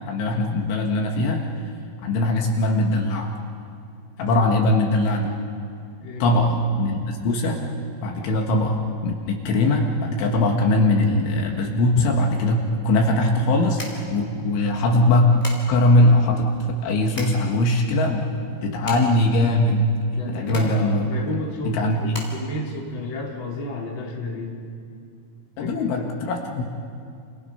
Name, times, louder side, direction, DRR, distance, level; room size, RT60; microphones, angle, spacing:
voice 1, 0.1-1.4 2.0-3.3 4.2-5.3 6.2-7.6 8.0-13.8 14.1-15.3 15.7-18.3 18.6-19.9 20.3-21.1 21.7-22.1 25.6-26.6, left 1 dB, 70° left, 1 dB, 3.9 m, -21 dB
voice 2, 6.0-6.4 20.1-24.6 25.6-25.9, left 2 dB, 30° left, -2 dB, 3.2 m, -32 dB
sound 1, 12.6-23.5, left 1 dB, 10° left, 4.0 m, -40 dB
29.5 x 29.5 x 5.7 m, 2.4 s
omnidirectional pair, 6.0 m